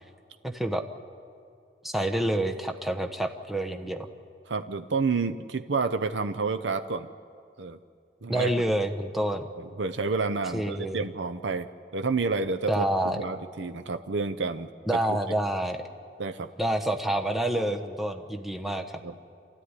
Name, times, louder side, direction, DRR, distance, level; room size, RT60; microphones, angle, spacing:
voice 1, 0.4-0.8 1.8-4.1 8.3-9.5 10.5-11.0 12.7-13.2 14.9-15.8 16.6-19.0, right 1 dB, ahead, 4 dB, 1.0 m, -28 dB
voice 2, 4.5-7.1 7.6-7.8 8.2-8.5 9.6-11.7 11.9-14.7 16.2-16.5 19.0-19.1, right 4 dB, 65° right, 9 dB, 0.7 m, -29 dB
27.5 x 14.5 x 9.8 m, 2.3 s
head